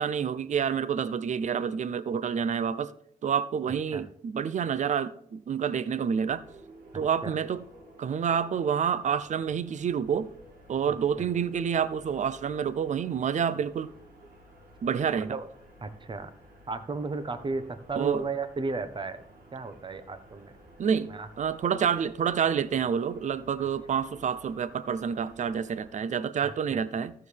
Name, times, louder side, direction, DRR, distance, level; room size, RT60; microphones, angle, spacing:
voice 1, 0.0-2.9 3.2-6.4 6.9-7.6 8.0-10.3 10.7-13.9 14.8-15.3 18.0-18.2 20.8-21.1 21.4-27.1, right 7 dB, 55° right, 0.6 m, -28 dB
sound 1, 6.2-25.9, right 1 dB, 85° right, 3.7 m, -54 dB
voice 2, 6.9-7.4 10.9-11.3 15.2-15.5 15.8-16.3 16.7-19.2 19.5-20.5 21.1-21.3 26.4-26.8, right 3 dB, 35° right, 1.2 m, -35 dB
14.0 x 6.6 x 3.4 m
cardioid pair, 95°, 15 cm